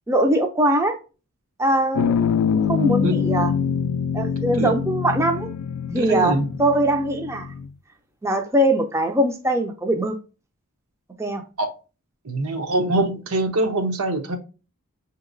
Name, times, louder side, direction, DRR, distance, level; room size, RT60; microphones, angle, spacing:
voice 1, 0.1-1.0 1.6-2.1 2.5-3.5 4.1-5.5 5.9-7.6 8.2-10.2 11.2-11.4, right 1 dB, 10° right, 0.3 m, -21 dB
sound 1, 1.9-7.7, left 7 dB, 85° left, 0.3 m, -24 dB
voice 2, 5.9-6.5 11.6-11.7 12.2-14.4, right 2 dB, 80° right, 0.8 m, -23 dB
6.0 x 2.8 x 2.5 m
head